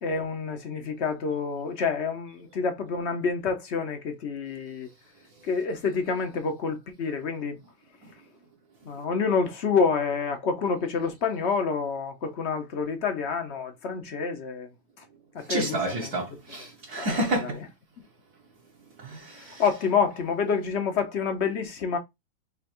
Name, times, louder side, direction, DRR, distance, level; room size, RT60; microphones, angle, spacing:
voice 1, 0.0-4.9 5.4-7.6 8.8-14.7 15.3-16.1 16.9-17.5 19.3-22.0, left 5 dB, 45° left, 0.9 m, -28 dB
voice 2, 15.4-17.6 19.0-19.6, right 1 dB, 55° right, 1.5 m, -30 dB
5.6 x 3.0 x 3.0 m
omnidirectional pair, 2.1 m